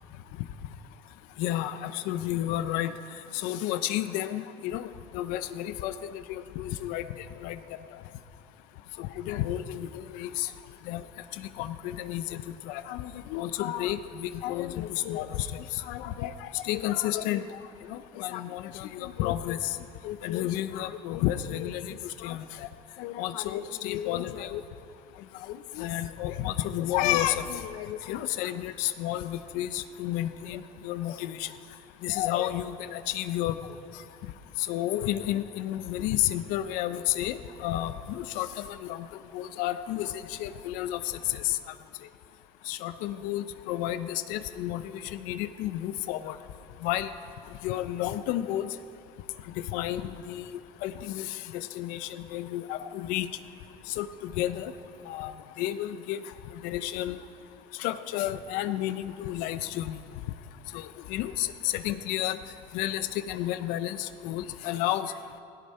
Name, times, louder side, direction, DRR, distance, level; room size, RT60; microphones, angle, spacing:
voice 1, 1.4-2.9 3.3-4.9 5.1-7.0 7.4-7.6 9.0-9.9 10.1-10.5 10.9-11.0 11.4-17.6 17.9-19.8 20.0-22.4 23.0-24.6 25.5-31.5 32.0-33.6 34.7-39.0 39.3-40.1 40.4-41.0 41.3-41.6 42.7-44.8 45.1-46.4 46.8-47.1 47.6-48.7 49.7-50.4 50.8-53.3 54.0-54.7 55.1-55.3 55.6-56.2 56.6-57.2 57.8-60.0 60.7-62.4 62.7-65.1, left 13 dB, 80° left, 12 dB, 0.7 m, -31 dB
17.5 x 16.5 x 4.4 m, 2.7 s
cardioid pair, 120°, 14 cm